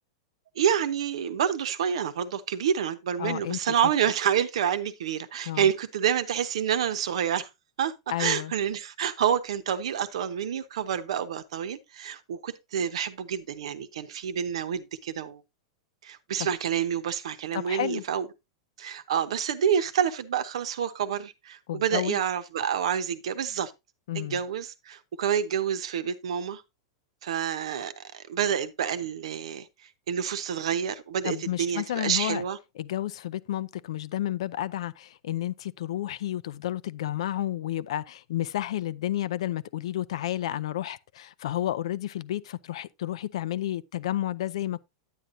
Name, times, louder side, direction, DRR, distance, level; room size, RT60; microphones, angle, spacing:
voice 1, 0.5-7.5 7.8-7.9 8.2-15.4 16.0-18.3 18.8-23.7 24.1-26.6 27.2-29.7 30.1-32.6, right 8 dB, 75° right, 0.9 m, -28 dB
voice 2, 3.2-3.9 5.5-5.7 8.1-8.5 16.4-16.5 17.5-18.0 21.7-22.2 24.1-24.4 31.2-32.4 32.8-44.8, left 13 dB, 75° left, 0.5 m, -31 dB
9.4 x 9.1 x 2.6 m
hypercardioid pair, 125°, 3 cm